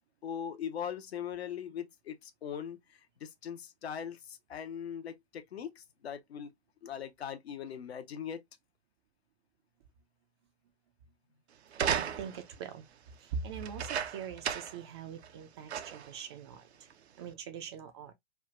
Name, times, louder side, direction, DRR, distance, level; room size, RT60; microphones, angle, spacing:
voice 1, 0.2-6.5 6.8-8.4, left 8 dB, 70° left, 0.7 m, -40 dB
sound 1, 11.7-12.5 13.6-14.9 15.2-15.3 15.7-16.1 16.9-17.0, right 8 dB, 75° right, 0.5 m, -34 dB
voice 2, 11.9-12.9 13.2-16.7 17.2-18.1, right 6 dB, 25° right, 0.3 m, -42 dB
3.4 x 2.2 x 2.3 m
figure-of-eight pair, 115°, 32 cm